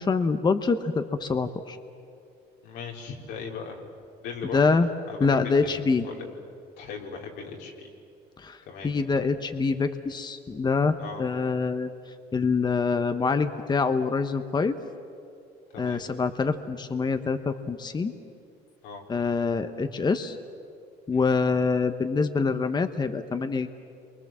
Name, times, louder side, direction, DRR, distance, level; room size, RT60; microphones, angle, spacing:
voice 1, 0.0-1.8 4.5-4.9 5.2-6.1 8.4-8.6 8.8-11.9 12.3-14.8 15.8-18.1 19.1-20.4 21.1-23.7, left 4 dB, 25° left, 8 dB, 1.0 m, -25 dB
voice 2, 2.6-3.8 4.2-4.6 5.1-5.8 6.0-6.3 6.8-7.9 8.7-8.9 11.0-11.3 15.7-16.0 18.8-19.1 21.1-21.3, left 5 dB, 85° left, 0 dB, 4.1 m, -38 dB
30.0 x 24.0 x 7.5 m, 2.5 s
cardioid pair, 110°, 17 cm